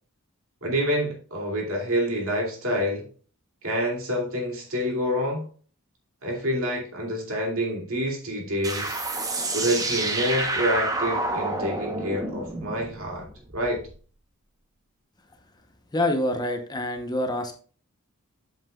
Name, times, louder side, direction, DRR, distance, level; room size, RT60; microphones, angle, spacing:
voice 1, 0.6-3.1 3.6-5.5 6.2-9.0 9.5-13.3 13.5-13.9, equal, 65° right, 0 dB, 2.5 m, -27 dB
sound 1, 8.6-13.9, right 2 dB, 15° right, 0.8 m, -29 dB
voice 2, 15.9-17.5, left 1 dB, 20° left, 5 dB, 0.8 m, -26 dB
8.0 x 7.6 x 2.3 m, 0.42 s
head